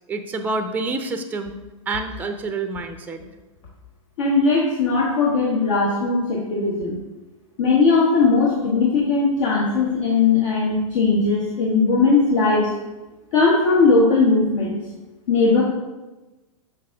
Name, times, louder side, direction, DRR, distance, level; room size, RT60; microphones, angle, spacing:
voice 1, 0.1-1.5 1.9-3.2, right 3 dB, 10° right, 7 dB, 0.5 m, -27 dB
voice 2, 4.2-7.0 7.6-12.7 13.3-14.8 15.3-15.6, left 4 dB, 65° left, -4 dB, 1.3 m, -18 dB
6.5 x 5.0 x 3.5 m, 1.1 s
hypercardioid pair, 105°, 17 cm